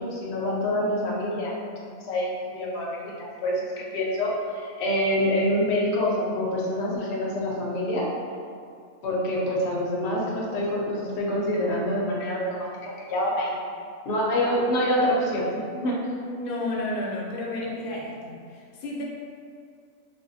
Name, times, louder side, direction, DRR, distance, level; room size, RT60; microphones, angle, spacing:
voice 1, 0.0-8.1 9.0-13.5 14.0-15.9, left 1 dB, 60° left, -4 dB, 0.8 m, -26 dB
voice 2, 16.2-19.0, left 2 dB, 90° left, -3 dB, 1.0 m, -32 dB
3.4 x 2.2 x 2.6 m, 2.3 s
omnidirectional pair, 1.4 m